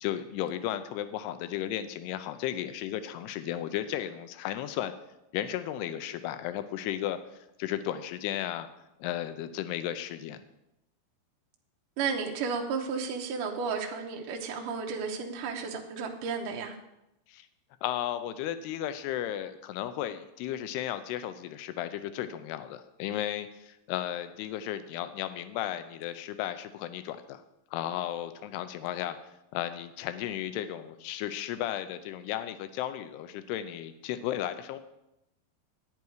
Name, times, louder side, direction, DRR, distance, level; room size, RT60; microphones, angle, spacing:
voice 1, 0.0-4.9 5.3-7.2 7.6-8.7 9.0-10.4 17.3-17.5 17.8-27.4 27.7-29.2 29.5-34.8, left 12 dB, 80° left, 11 dB, 2.6 m, -34 dB
voice 2, 12.0-16.7, right 5 dB, 70° right, 1 dB, 2.1 m, -33 dB
10.5 x 9.6 x 4.7 m, 0.88 s
omnidirectional pair, 4.8 m